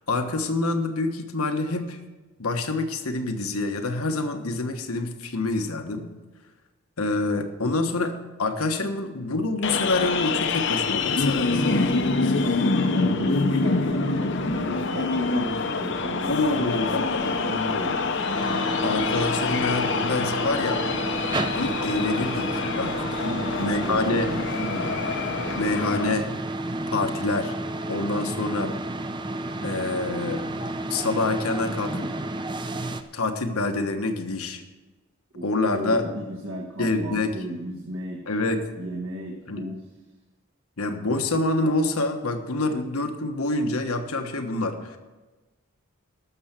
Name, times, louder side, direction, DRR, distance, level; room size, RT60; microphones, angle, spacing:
voice 1, 0.0-2.0 2.4-6.1 7.0-11.8 16.3-17.0 18.8-20.8 21.5-23.1 23.6-24.3 25.6-26.3 26.9-27.5 27.9-28.7 29.6-30.4 30.9-32.1 33.1-34.6 35.4-36.0 36.8-37.3 38.3-38.6 39.5-39.6 40.8-45.0, left 2 dB, 85° left, 6 dB, 1.3 m, -26 dB
sound 1, 9.6-26.1, left 3 dB, 55° left, 0.7 m, -26 dB
voice 2, 12.9-18.1 23.2-24.9 28.2-28.8 35.3-38.2 38.8-39.8, right 1 dB, 70° right, -2 dB, 1.6 m, -35 dB
sound 2, 18.3-33.0, right 1 dB, 20° right, 0.5 m, -31 dB
12.5 x 6.9 x 7.4 m, 1.2 s
head